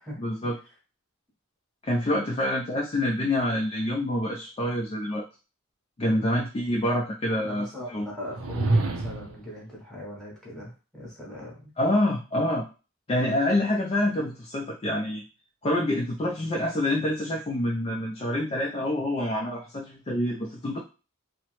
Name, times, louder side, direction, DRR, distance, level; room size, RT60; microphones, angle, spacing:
voice 1, 0.2-0.5 1.8-5.2 6.0-8.1 11.8-12.6 13.1-15.2 15.6-20.8, left 1 dB, 30° left, -2 dB, 0.4 m, -27 dB
voice 2, 6.1-6.4 7.3-11.7, left 1 dB, 5° left, -5 dB, 0.9 m, -39 dB
sound 1, 8.3-9.5, right 2 dB, 75° right, 0.5 m, -26 dB
2.9 x 2.0 x 2.9 m, 0.33 s
head